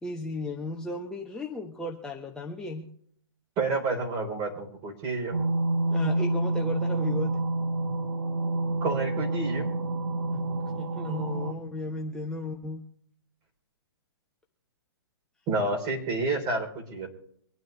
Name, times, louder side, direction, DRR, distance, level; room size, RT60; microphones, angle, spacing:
voice 1, 0.0-2.9 5.9-7.4 10.3-12.8, left 2 dB, 5° left, -2 dB, 1.2 m, -35 dB
voice 2, 3.6-5.3 8.8-9.6 15.5-17.1, right 3 dB, 30° right, 2 dB, 4.1 m, -29 dB
sound 1, 5.3-11.5, right 2 dB, 75° right, 1.3 m, -28 dB
25.0 x 9.4 x 3.5 m, 0.65 s
hypercardioid pair, 135°, 13 cm